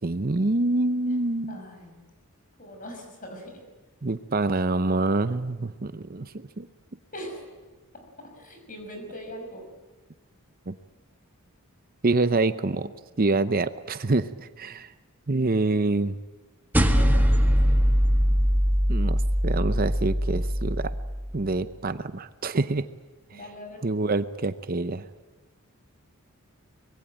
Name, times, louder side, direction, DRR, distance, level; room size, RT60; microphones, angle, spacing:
voice 1, 0.0-1.6 4.0-6.7 10.7-10.8 12.0-12.9 13.2-14.9 15.3-16.1 18.9-20.9 21.3-22.8 23.3-23.4 23.8-25.0, right 2 dB, 40° right, 12 dB, 0.7 m, -26 dB
voice 2, 1.5-1.9 2.6-3.6 7.1-7.5 8.3-9.6 16.9-17.1 17.4-17.7 23.3-23.8, equal, 35° left, 5 dB, 6.1 m, -41 dB
sound 1, 16.7-21.4, equal, 10° right, 1.7 m, -22 dB
24.5 x 21.0 x 9.1 m, 1.3 s
head